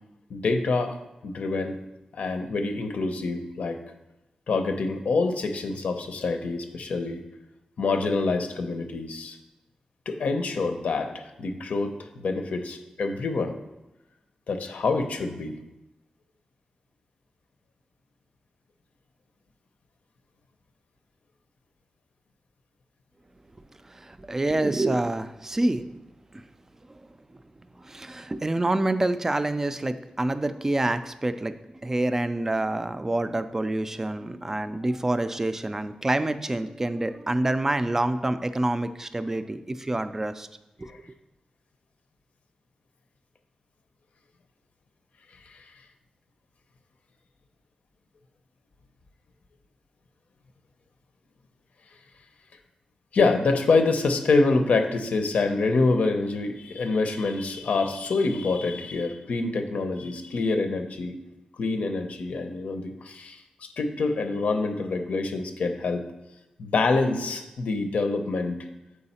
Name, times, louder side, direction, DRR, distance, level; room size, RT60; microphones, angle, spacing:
voice 1, 0.3-0.9 1.2-1.8 2.1-3.8 4.5-7.2 7.8-9.4 10.1-13.6 14.5-15.5 40.9-41.0 53.1-61.2 61.6-66.0 66.6-68.6, left 3 dB, 85° left, 6 dB, 0.7 m, -26 dB
voice 2, 23.9-25.9 26.3-26.4 27.8-40.5 40.8-40.9, right 2 dB, 20° right, 11 dB, 0.3 m, -27 dB
6.9 x 4.8 x 4.2 m, 0.95 s
wide cardioid pair, 145°, 2 cm